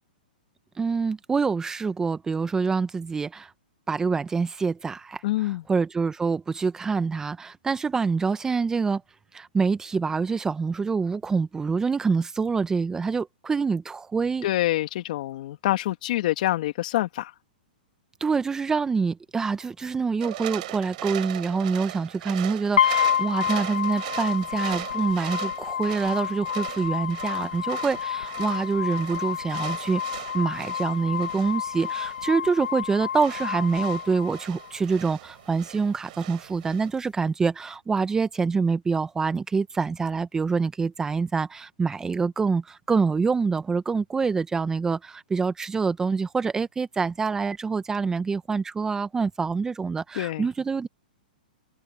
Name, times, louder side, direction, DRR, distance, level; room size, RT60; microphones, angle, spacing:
voice 1, 0.8-3.5 3.9-5.2 5.7-9.0 9.3-14.5 18.2-30.0 30.3-50.9, right 5 dB, 10° right, 1.0 m, -26 dB
voice 2, 5.2-5.6 14.4-17.3 50.2-50.5, left 15 dB, 55° left, 2.2 m, -26 dB
sound 1, 20.2-36.9, right 16 dB, 55° right, 6.1 m, -39 dB
sound 2, 22.8-34.8, left 9 dB, 85° left, 1.4 m, -29 dB
hypercardioid pair, 135°, 5 cm